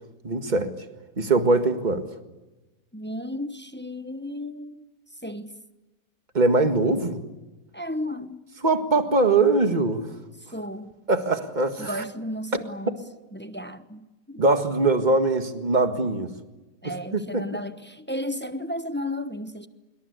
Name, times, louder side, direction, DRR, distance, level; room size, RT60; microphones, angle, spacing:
voice 1, 0.2-0.7 1.2-2.1 6.3-7.2 8.6-10.1 11.1-11.9 14.4-16.3 16.8-17.5, right 3 dB, 25° right, 1.8 m, -22 dB
voice 2, 2.9-4.9 5.2-5.5 7.7-8.5 10.4-11.0 11.8-13.0 13.3-14.4 16.8-19.7, left 1 dB, 10° left, 0.7 m, -34 dB
25.5 x 23.0 x 8.3 m
omnidirectional pair, 1.8 m